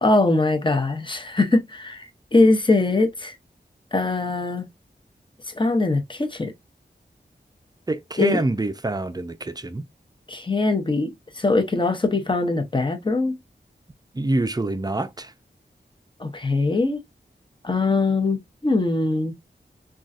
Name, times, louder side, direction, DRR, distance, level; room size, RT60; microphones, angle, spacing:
voice 1, 0.0-3.3 3.9-4.7 5.5-6.5 8.2-8.4 10.3-13.3 16.2-17.0 17.6-19.3, left 3 dB, 25° left, 0.7 m, -22 dB
voice 2, 7.9-9.8 14.1-15.3, right 2 dB, 20° right, 0.4 m, -26 dB
3.8 x 2.4 x 2.4 m
wide cardioid pair, 60°, 19 cm